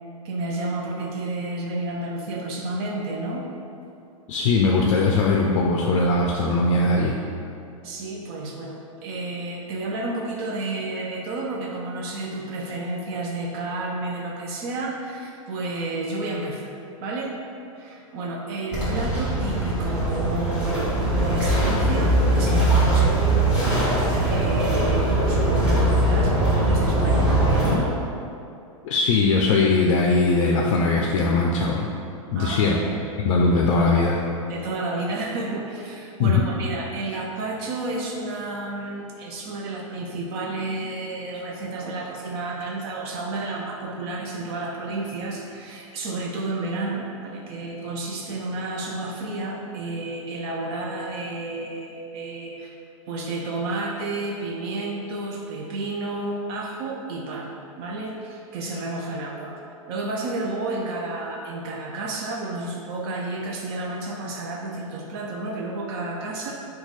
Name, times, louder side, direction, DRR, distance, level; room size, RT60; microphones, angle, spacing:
voice 1, 0.2-3.5 7.8-16.7 17.0-17.4 17.8-23.1 24.3-27.9 32.4-32.8 34.5-52.7 53.1-59.6 59.9-66.5, right 2 dB, 45° right, -1 dB, 0.4 m, -31 dB
voice 2, 4.3-7.1 28.8-31.9 32.3-32.8 33.2-34.2 36.2-36.4, left 3 dB, 60° left, -1 dB, 0.4 m, -20 dB
sound 1, 18.7-27.7, right 1 dB, 5° right, 1.3 m, -21 dB
3.0 x 2.3 x 3.9 m, 2.5 s
hypercardioid pair, 115°, 18 cm